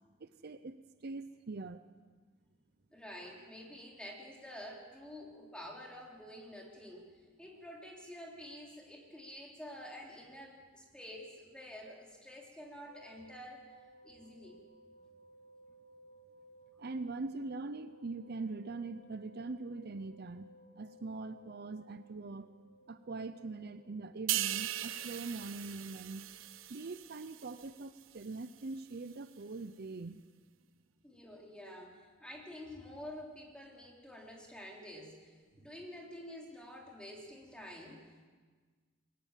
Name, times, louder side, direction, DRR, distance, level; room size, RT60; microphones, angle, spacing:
voice 1, 0.2-1.8 16.8-20.5 20.8-22.5 22.9-26.3 26.7-30.2, right 3 dB, 50° right, 11 dB, 0.6 m, -42 dB
voice 2, 2.9-7.1 7.4-13.6 14.0-14.6 31.0-38.3, left 1 dB, 5° left, -1 dB, 3.5 m, -49 dB
sound 1, 12.8-27.8 28.0-28.1, equal, 25° left, 4.0 m, -61 dB
sound 2, 24.3-27.8 28.2-28.4, right 13 dB, 70° right, 0.9 m, -38 dB
22.0 x 18.0 x 7.5 m, 1.5 s
head